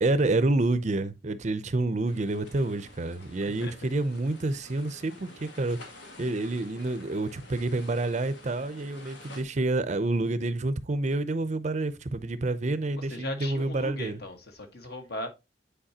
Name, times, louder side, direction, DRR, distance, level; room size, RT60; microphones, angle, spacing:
voice 1, 0.0-5.8 6.2-14.2, right 2 dB, 40° right, 0.5 m, -28 dB
sound 1, 2.0-9.4, left 2 dB, 90° left, 1.8 m, -50 dB
voice 2, 3.3-3.8 12.9-15.3, left 1 dB, 60° left, 1.5 m, -38 dB
8.9 x 4.7 x 2.8 m
head